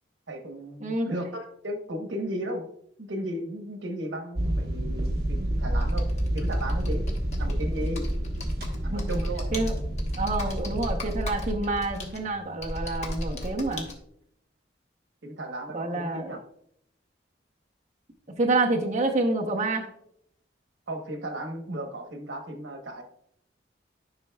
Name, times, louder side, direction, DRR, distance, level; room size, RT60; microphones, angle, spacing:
voice 1, 0.3-2.7 3.0-6.1 6.3-7.1 7.4-8.1 8.8-9.5 15.2-16.4 20.9-23.0, right 1 dB, 85° right, 4 dB, 1.1 m, -35 dB
voice 2, 0.8-1.2 8.9-9.0 9.5-9.8 10.2-13.8 15.7-16.4 18.4-19.9, right 2 dB, 40° right, -1 dB, 0.8 m, -27 dB
sound 1, 4.4-11.9, right 1 dB, 55° right, 1.2 m, -29 dB
Computer keyboard, 5.8-13.9, equal, 40° left, 1.1 m, -35 dB
10.5 x 5.4 x 2.3 m, 0.71 s
head